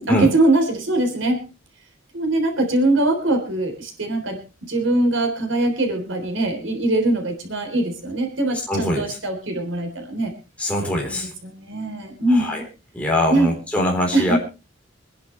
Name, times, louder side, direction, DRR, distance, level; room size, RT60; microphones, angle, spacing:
voice 1, 0.0-1.5 2.1-10.3 11.1-12.6 13.3-13.5 14.1-14.4, right 2 dB, 75° right, 3 dB, 3.7 m, -22 dB
voice 2, 8.7-9.0 10.6-11.3 12.4-12.6 12.9-14.4, left 1 dB, 5° left, -2 dB, 3.9 m, -22 dB
25.0 x 10.5 x 3.3 m, 0.30 s
head